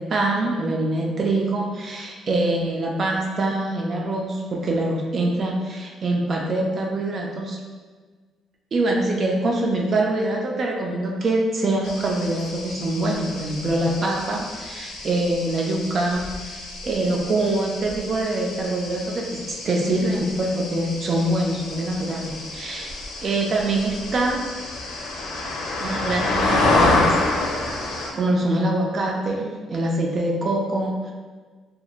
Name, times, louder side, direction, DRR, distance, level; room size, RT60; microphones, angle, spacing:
voice 1, 0.0-7.6 8.7-19.4 19.6-24.4 25.8-27.1 27.9-31.1, right 2 dB, 35° right, 0 dB, 0.3 m, -24 dB
sound 1, 11.8-28.1, left 2 dB, 85° left, 0.5 m, -28 dB
3.0 x 2.4 x 2.4 m, 1.4 s
cardioid pair, 155°, 0 cm